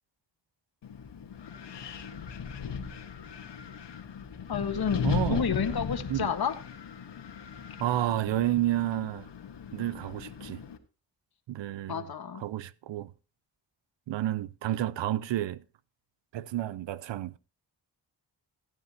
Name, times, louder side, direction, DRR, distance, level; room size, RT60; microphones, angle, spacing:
Wind, 0.8-10.8, left 7 dB, 75° left, 1.5 m, -37 dB
voice 1, 4.5-6.5 11.9-12.4, left 7 dB, 60° left, 1.5 m, -30 dB
voice 2, 5.0-5.4 6.1-6.3 7.8-9.3 9.7-10.6 11.5-12.1 12.4-13.1 14.1-15.6 16.3-17.4, right 13 dB, 90° right, 0.6 m, -30 dB
16.5 x 9.2 x 2.9 m
cardioid pair, 65°, 43 cm